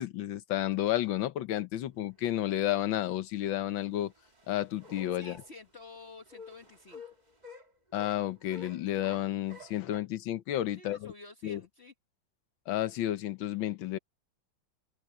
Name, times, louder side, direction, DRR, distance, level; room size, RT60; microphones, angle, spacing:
voice 1, 0.0-4.1 4.5-5.4 7.9-11.1 11.4-11.6 12.7-14.0, left 13 dB, 85° left, 1.7 m, -31 dB
sound 1, 2.1-2.2 2.6-2.8 3.4-5.5 6.1-10.0, left 3 dB, 20° right, 2.2 m, -51 dB
voice 2, 5.1-7.0 10.7-11.9, left 3 dB, 40° left, 1.3 m, -50 dB
omnidirectional pair, 2.1 m